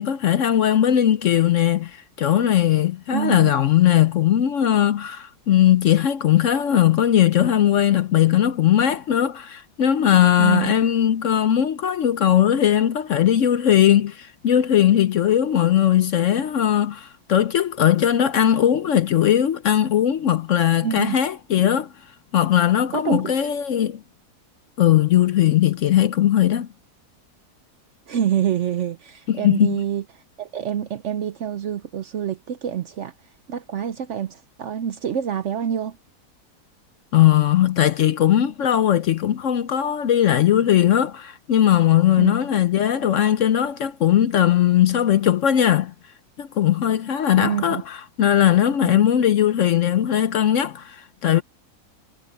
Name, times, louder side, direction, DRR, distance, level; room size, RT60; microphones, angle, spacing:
voice 1, 0.0-21.9 22.3-24.0 24.8-26.7 29.3-29.8 37.1-45.9 46.4-51.4, left 11 dB, 60° left, 0.9 m, -19 dB
voice 2, 3.1-3.5 10.4-10.7 20.8-21.2 22.9-23.3 28.1-30.0 30.4-33.1 33.5-36.0 42.2-42.4 47.4-47.8 48.8-49.0, right 9 dB, 60° right, 0.8 m, -26 dB
omnidirectional pair, 1.7 m